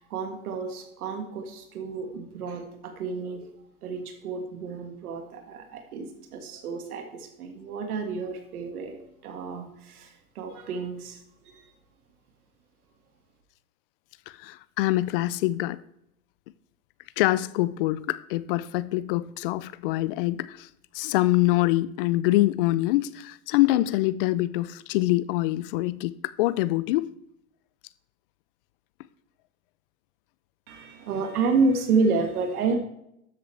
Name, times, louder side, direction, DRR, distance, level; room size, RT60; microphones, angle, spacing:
voice 1, 0.0-3.5 3.8-11.6 30.7-32.8, right 4 dB, 75° right, 1.9 m, -30 dB
voice 2, 14.4-15.8 17.2-20.7 20.9-27.1, left 17 dB, 40° left, 0.4 m, -25 dB
12.5 x 7.7 x 3.3 m
hypercardioid pair, 125°, 45 cm